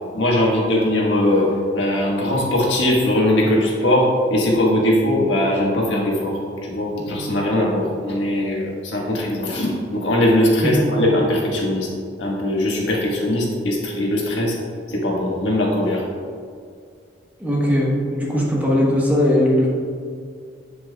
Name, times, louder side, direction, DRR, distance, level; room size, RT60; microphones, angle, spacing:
voice 1, 0.1-1.5 1.7-11.9 12.2-14.6 14.9-16.0, left 1 dB, 80° left, -3 dB, 1.5 m, -20 dB
voice 2, 17.4-19.7, left 1 dB, 10° right, -4 dB, 1.1 m, -19 dB
7.6 x 7.1 x 2.3 m, 2.2 s
head